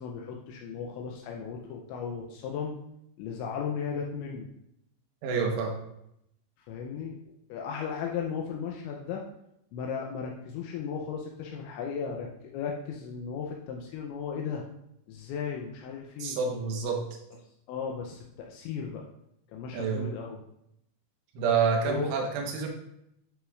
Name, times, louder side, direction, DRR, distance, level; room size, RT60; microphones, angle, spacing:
voice 1, 0.0-2.8 3.2-4.5 6.7-9.2 9.7-12.3 12.5-14.6 15.1-16.4 17.7-19.1 19.5-20.4 21.8-22.1, left 6 dB, 85° left, 0 dB, 2.8 m, -36 dB
voice 2, 5.2-5.8 16.2-17.0 19.7-20.1 21.4-22.7, right 5 dB, 80° right, 0 dB, 3.7 m, -28 dB
11.0 x 6.4 x 2.5 m, 0.78 s
omnidirectional pair, 5.7 m